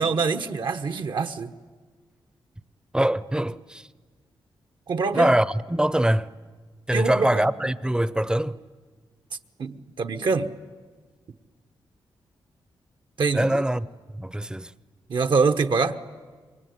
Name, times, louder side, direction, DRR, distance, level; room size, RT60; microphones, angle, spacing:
voice 1, 0.0-1.5 4.9-5.3 6.9-7.5 9.6-10.5 13.2-13.6 15.1-16.0, right 4 dB, 60° right, 1.2 m, -24 dB
voice 2, 2.9-3.9 5.1-6.3 6.9-8.6 13.3-13.9 14.1-14.7, right 1 dB, 10° right, 0.7 m, -23 dB
26.5 x 23.0 x 9.5 m
cardioid pair, 95°, 9 cm